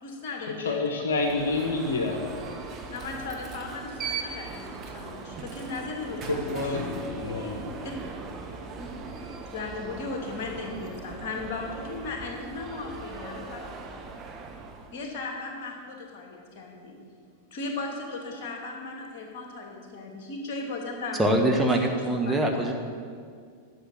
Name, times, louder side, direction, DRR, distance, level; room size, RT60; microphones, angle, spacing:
voice 1, 0.0-0.8 2.9-6.6 7.8-7.9 8.8-8.9 9.3-13.9 14.9-17.0 17.5-21.5 21.9-22.5, left 3 dB, 50° left, 1 dB, 2.5 m, -37 dB
voice 2, 0.6-2.3 6.3-7.6, left 3 dB, 65° left, 2 dB, 1.4 m, -28 dB
Alarm, 1.1-15.0, right 4 dB, 30° right, 1.2 m, -39 dB
voice 3, 21.2-22.7, right 1 dB, 10° right, 1 dB, 1.3 m, -23 dB
11.5 x 7.2 x 7.7 m, 2.1 s
figure-of-eight pair, 90°, 0 cm